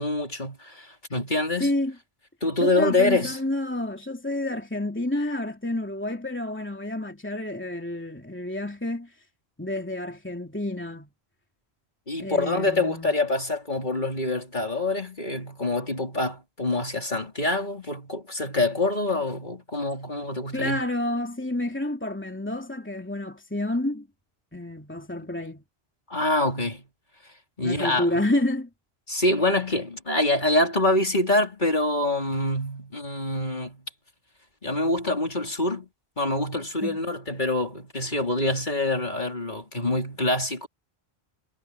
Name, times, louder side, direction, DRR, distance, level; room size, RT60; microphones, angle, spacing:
voice 1, 0.0-1.7 2.4-3.4 12.1-20.8 26.1-26.9 27.2-28.2 29.1-33.9 34.6-35.9 36.2-40.7, left 2 dB, 45° left, 3.9 m, -26 dB
voice 2, 1.6-1.9 2.6-9.1 9.6-11.1 12.2-13.1 20.5-24.1 24.5-25.6 27.6-28.7 36.8-37.0, left 1 dB, 10° left, 2.9 m, -29 dB
omnidirectional pair, 1.1 m